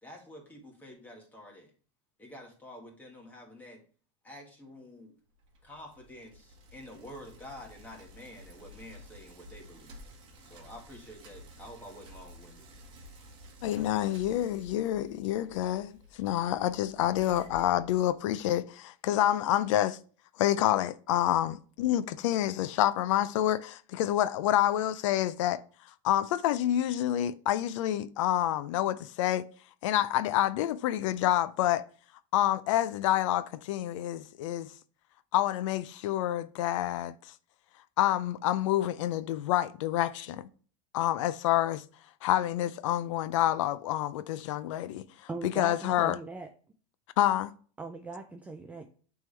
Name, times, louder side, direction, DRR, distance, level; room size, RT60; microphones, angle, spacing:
voice 1, 0.0-1.7 2.2-3.8 4.2-5.1 5.6-10.1 10.4-12.7, left 1 dB, 10° left, 1.7 m, -49 dB
Bicycle, 5.3-18.5, equal, 35° right, 1.5 m, -52 dB
voice 2, 13.6-20.0 20.4-25.6 26.0-29.5 29.8-31.8 32.3-34.7 35.3-37.1 38.0-40.5 40.9-41.8 42.2-46.2 47.2-47.5, left 12 dB, 80° left, 0.5 m, -28 dB
voice 3, 45.3-46.5 47.8-48.9, right 3 dB, 10° right, 0.4 m, -39 dB
9.0 x 3.6 x 3.2 m
supercardioid pair, 155°, 16 cm